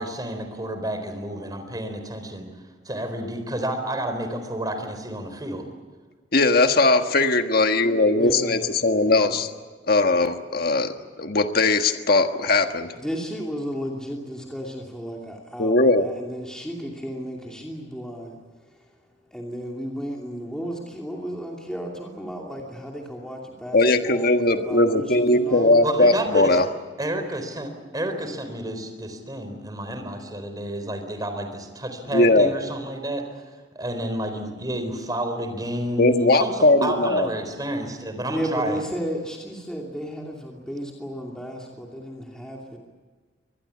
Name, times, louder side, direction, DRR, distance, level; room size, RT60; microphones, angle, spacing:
voice 1, 0.0-2.5 2.9-5.6 25.8-26.5 27.0-33.4 33.8-38.8, right 1 dB, 20° right, 7 dB, 4.1 m, -30 dB
voice 2, 6.3-9.5 9.9-12.9 15.6-16.0 23.7-26.7 32.1-32.5 36.0-37.3, left 2 dB, 55° left, 6 dB, 1.5 m, -19 dB
voice 3, 8.1-8.7 9.0-9.4 13.0-18.9 19.3-25.9 38.3-42.8, equal, 5° left, -1 dB, 2.7 m, -34 dB
24.5 x 20.5 x 8.5 m, 1.4 s
head